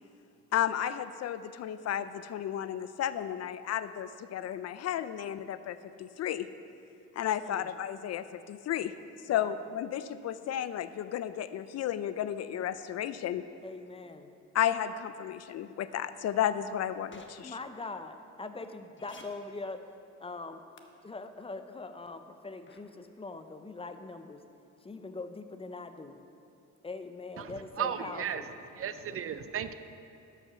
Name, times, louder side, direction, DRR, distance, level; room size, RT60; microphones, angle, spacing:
voice 1, 0.5-6.5 7.2-8.9 9.2-13.4 14.5-17.6, left 10 dB, 60° left, 13 dB, 0.4 m, -33 dB
voice 2, 13.6-14.3 17.1-19.8 20.2-20.6 21.0-24.4 24.8-26.2 26.8-28.5, left 3 dB, 20° left, 9 dB, 0.6 m, -42 dB
sound 1, 17.1-17.3 19.0-19.2 20.8-20.9 22.7-22.8, left 5 dB, 40° left, 1.1 m, -51 dB
voice 3, 27.8-28.4 28.8-29.7, right 8 dB, 50° right, 11 dB, 0.5 m, -34 dB
11.5 x 5.7 x 6.1 m, 2.6 s
cardioid pair, 90°, 30 cm